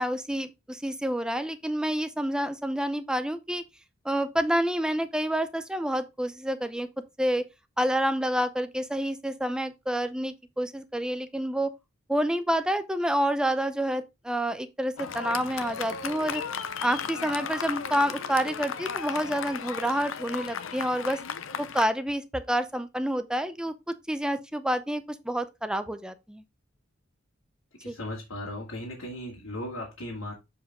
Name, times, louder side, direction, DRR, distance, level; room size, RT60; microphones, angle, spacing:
voice 1, 0.0-3.6 4.0-6.9 7.2-7.5 7.8-11.7 12.1-16.4 16.8-21.2 21.6-26.4 27.9-28.0, equal, 5° right, 0.6 m, -28 dB
Fireworks, 15.0-21.8, left 6 dB, 70° left, 0.6 m, -35 dB
voice 2, 27.8-30.3, left 1 dB, 85° left, 2.1 m, -37 dB
6.9 x 4.8 x 3.6 m
head